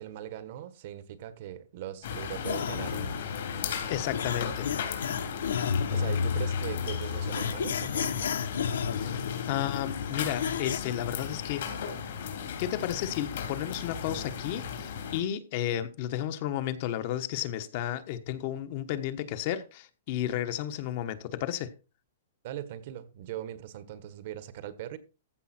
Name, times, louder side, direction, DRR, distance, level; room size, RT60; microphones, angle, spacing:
voice 1, 0.0-3.2 5.9-8.2 22.4-25.0, right 11 dB, 50° right, 1.3 m, -40 dB
sound 1, 2.0-15.2, left 7 dB, 65° left, 3.2 m, -36 dB
sound 2, 2.4-10.8, left 7 dB, 90° left, 0.9 m, -32 dB
voice 2, 3.9-4.7 9.0-11.7 12.4-21.7, left 11 dB, 45° left, 1.2 m, -33 dB
15.0 x 5.6 x 4.4 m
hypercardioid pair, 155°, 0 cm